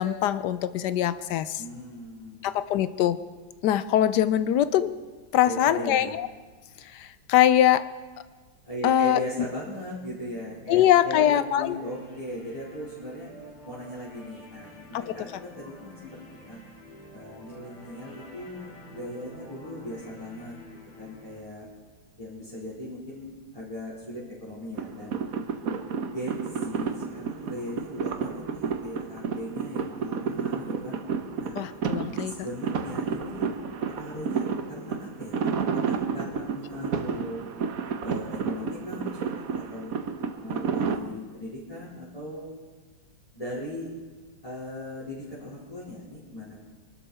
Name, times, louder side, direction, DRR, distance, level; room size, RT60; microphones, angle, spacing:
voice 1, 0.0-1.6 2.4-3.2 3.6-4.9 5.3-6.3 6.8-7.9 8.8-9.2 10.7-11.8 14.9-15.2 31.5-32.3, left 11 dB, 70° left, 14 dB, 1.2 m, -23 dB
voice 2, 1.6-2.5 5.4-6.1 8.6-13.3 13.6-16.6 17.1-20.6 21.0-21.7 22.2-25.2 25.9-31.0 31.4-31.7 32.2-33.5 33.9-37.4 38.0-39.9 40.3-42.5 43.3-43.9 44.4-46.7, left 1 dB, 15° left, -10 dB, 4.4 m, -38 dB
sound 1, 10.4-21.4, left 1 dB, 45° left, 3.3 m, -49 dB
sound 2, 24.8-41.0, right 6 dB, 55° right, 1.2 m, -31 dB
24.5 x 12.5 x 4.3 m, 1.4 s
omnidirectional pair, 2.1 m